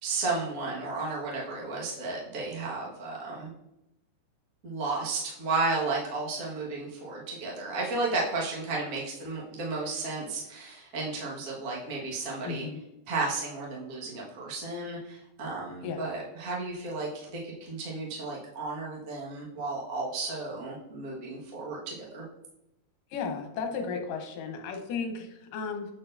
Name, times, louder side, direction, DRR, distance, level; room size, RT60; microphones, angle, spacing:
voice 1, 0.0-3.5 4.6-12.7 13.1-22.2, right 3 dB, 55° right, -4 dB, 0.9 m, -33 dB
voice 2, 12.4-12.8 15.8-16.1 23.1-25.9, left 5 dB, 75° left, 4 dB, 2.4 m, -34 dB
8.2 x 4.4 x 2.6 m, 0.87 s
omnidirectional pair, 4.1 m